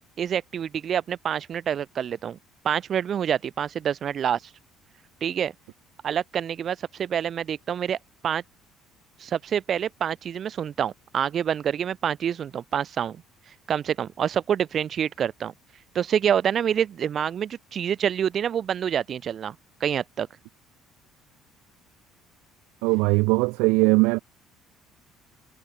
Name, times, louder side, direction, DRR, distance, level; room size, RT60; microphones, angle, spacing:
voice 1, 0.2-2.4 2.6-4.4 5.2-5.5 6.0-8.0 8.2-8.4 9.2-13.2 13.7-15.5 16.0-19.6 19.8-20.3, right 8 dB, 45° right, 5.1 m, -27 dB
voice 2, 22.8-24.2, right 28 dB, 65° right, 2.1 m, -20 dB
figure-of-eight pair, 55°, 0 cm